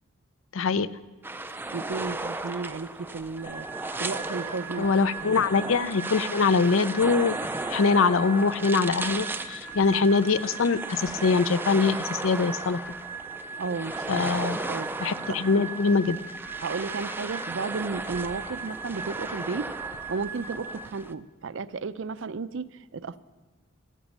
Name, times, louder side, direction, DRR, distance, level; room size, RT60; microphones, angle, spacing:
voice 1, 0.5-0.9 4.8-7.3 7.7-12.8 14.1-14.6 15.0-16.2, left 4 dB, 65° left, 16 dB, 0.5 m, -23 dB
sound 1, 1.2-21.1, right 2 dB, 10° right, 0.4 m, -36 dB
voice 2, 1.7-3.7 4.0-4.9 5.2-5.4 13.6-14.9 16.6-19.7 20.1-23.2, right 4 dB, 60° right, 15 dB, 0.5 m, -33 dB
sound 2, 3.4-20.7, right 5 dB, 40° left, 2.1 m, -40 dB
13.5 x 13.5 x 7.3 m, 1.3 s
head